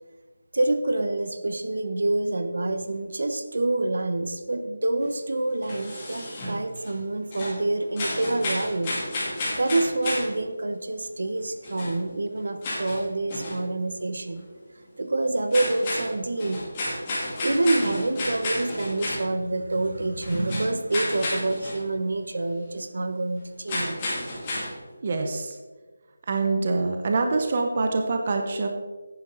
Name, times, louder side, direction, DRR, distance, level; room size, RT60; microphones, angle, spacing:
voice 1, 0.5-8.9 9.6-14.5 15.0-16.6 17.4-24.2, right 2 dB, 65° right, 8 dB, 1.1 m, -27 dB
sound 1, 5.0-7.1 7.3-10.4 11.3-11.4 11.6-13.6 13.9-14.1 14.4-14.5 14.8-14.9 15.4-19.6 19.8-21.9 22.1-22.2 22.5-22.6 23.7-24.8, left 1 dB, 20° left, 2.6 m, -32 dB
voice 2, 25.0-25.6 26.3-28.7, right 3 dB, 30° right, 4 dB, 0.8 m, -25 dB
10.5 x 9.8 x 4.0 m, 1.3 s
figure-of-eight pair, 175°, 0 cm